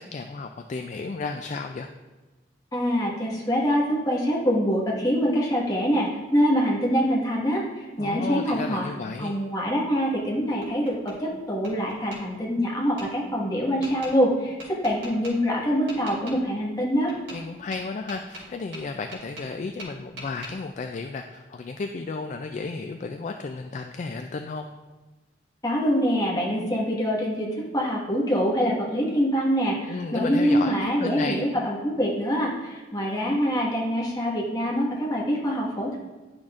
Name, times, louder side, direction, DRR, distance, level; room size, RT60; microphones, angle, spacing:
voice 1, 0.0-1.9 8.0-9.4 17.3-24.7 29.9-31.4, left 4 dB, 40° left, 5 dB, 0.3 m, -33 dB
voice 2, 2.7-8.9 9.2-17.1 25.6-36.0, equal, 20° left, -4 dB, 1.5 m, -25 dB
Tap, 10.1-11.2 11.6-12.2 13.0-13.1 13.8-14.1 14.6-15.3 15.9-16.4 17.1-17.4 17.7-19.5 19.8-20.5, right 1 dB, 70° right, 2.5 m, -41 dB
10.0 x 6.2 x 2.5 m, 1.2 s
head